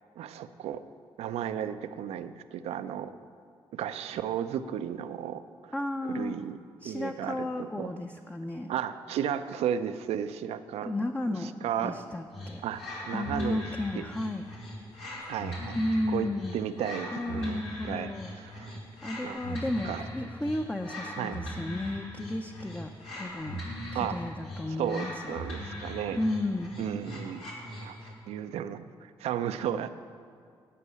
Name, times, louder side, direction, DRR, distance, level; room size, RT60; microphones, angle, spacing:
voice 1, 0.2-0.8 1.2-3.2 3.7-5.7 6.0-6.6 6.8-7.9 8.7-10.9 11.4-12.0 12.6-13.6 14.0-14.1 15.2-15.8 16.1-16.3 16.5-17.6 17.9-18.8 19.2-19.4 19.8-20.0 21.2-21.4 23.9-24.2 24.8-26.2 26.8-27.5 27.8-29.9, right 9 dB, 85° right, 11 dB, 0.5 m, -34 dB
voice 2, 5.7-6.4 6.8-8.7 10.8-12.6 13.1-14.4 15.7-16.6 17.1-18.4 19.0-23.6 24.0-25.3 26.2-26.7, left 1 dB, 15° left, 4 dB, 0.6 m, -33 dB
sound 1, 12.3-28.2, equal, 80° left, 2.6 m, -40 dB
11.0 x 5.4 x 8.1 m, 2.3 s
supercardioid pair, 60°, 10 cm